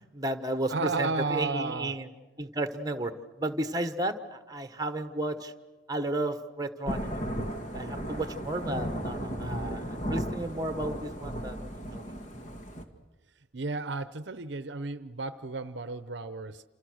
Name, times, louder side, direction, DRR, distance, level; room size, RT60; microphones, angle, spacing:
voice 1, 0.1-2.1 2.4-3.1 3.4-5.5 5.9-7.2 7.7-11.6 11.9-12.1, right 1 dB, 20° right, 9 dB, 1.3 m, -33 dB
voice 2, 0.7-2.0 13.5-16.6, right 3 dB, 60° right, 13 dB, 0.8 m, -33 dB
Thunder / Rain, 6.9-12.8, equal, 40° left, 2.2 m, -35 dB
28.5 x 28.0 x 6.4 m, 1.3 s
head